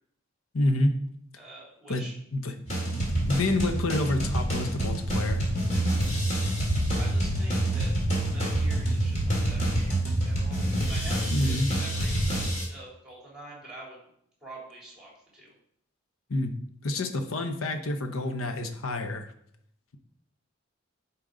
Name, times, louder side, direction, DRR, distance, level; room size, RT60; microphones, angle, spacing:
voice 1, 0.5-0.9 1.9-2.0 2.3-2.5 3.3-5.4 11.3-11.7 16.3-16.5 16.8-19.3, left 2 dB, 80° left, 7 dB, 0.8 m, -28 dB
voice 2, 1.4-2.1 6.9-7.9 8.3-10.6 10.9-14.0 14.4-15.5, right 2 dB, 5° right, -4 dB, 2.9 m, -46 dB
sound 1, 2.7-12.6, right 1 dB, 35° left, 2.1 m, -29 dB
sound 2, 5.1-12.5, right 1 dB, 40° right, 1.1 m, -29 dB
10.0 x 4.6 x 3.8 m, 0.70 s
head